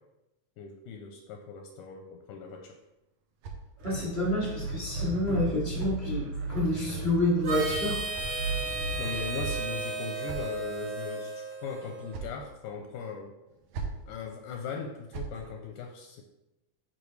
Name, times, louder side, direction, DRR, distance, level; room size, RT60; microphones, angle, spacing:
voice 1, 0.6-2.8 9.0-13.3 14.1-16.2, left 5 dB, 80° left, 4 dB, 1.9 m, -39 dB
sound 1, 2.5-4.2 5.2-6.6 7.6-8.9 9.8-10.8 11.7-12.5 13.5-14.1 14.8-15.4, right 4 dB, 85° right, 1.5 m, -44 dB
voice 2, 3.8-8.0, left 1 dB, 30° right, -7 dB, 0.9 m, -28 dB
sound 2, 3.8-9.6, right 3 dB, 70° right, 2.2 m, -35 dB
Harmonica, 7.4-12.2, right 3 dB, 55° right, 2.6 m, -35 dB
9.9 x 3.9 x 3.2 m, 0.95 s
omnidirectional pair, 4.0 m